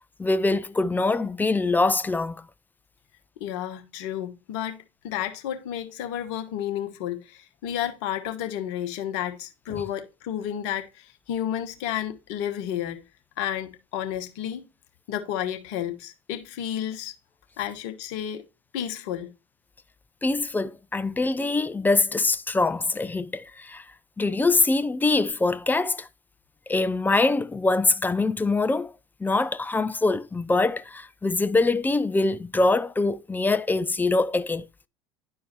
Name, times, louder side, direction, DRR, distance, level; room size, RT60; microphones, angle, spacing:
voice 1, 0.2-2.4 9.7-9.8 20.2-23.8 24.2-26.1 26.7-28.9 29.2-34.7, left 3 dB, 10° left, 0.4 m, -24 dB
voice 2, 3.4-13.0 13.4-14.6 15.1-17.1 17.6-18.4 18.7-19.3, left 10 dB, 60° left, 1.2 m, -31 dB
11.0 x 4.7 x 2.8 m
hypercardioid pair, 75°, 17 cm